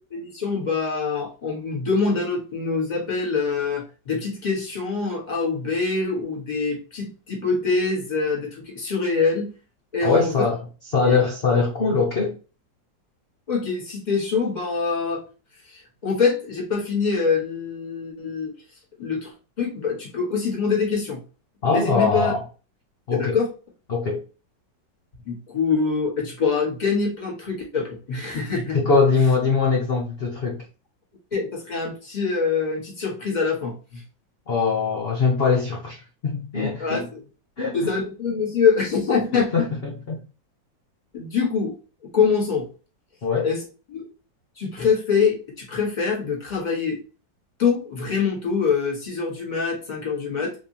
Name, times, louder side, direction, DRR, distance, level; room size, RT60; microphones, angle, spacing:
voice 1, 0.1-9.5 9.9-10.4 11.0-11.2 13.5-15.2 15.6-18.5 19.0-21.2 21.6-22.3 23.1-23.5 25.3-28.8 31.3-34.0 36.8-37.2 37.7-39.5 41.1-41.7 42.1-42.7 43.4-43.6 43.9-44.1 44.6-47.0 47.6-50.5, left 5 dB, 25° left, 1.3 m, -24 dB
voice 2, 10.0-10.7 10.9-12.3 21.6-22.4 23.1-23.4 23.9-24.2 28.7-30.7 34.5-37.0 37.6-37.9 39.3-40.2 43.2-43.5, left 4 dB, 75° left, 0.5 m, -22 dB
3.6 x 3.1 x 2.8 m
omnidirectional pair, 2.0 m